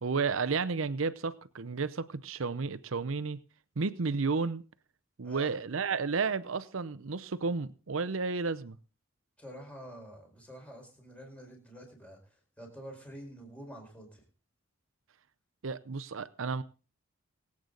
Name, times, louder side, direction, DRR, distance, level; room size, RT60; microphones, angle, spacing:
voice 1, 0.0-3.4 3.8-4.6 5.2-8.8 15.6-16.6, right 4 dB, 80° right, 0.7 m, -32 dB
voice 2, 5.2-5.6 9.4-12.2 12.6-14.2, equal, 5° left, 4.6 m, -47 dB
23.5 x 8.6 x 3.9 m
head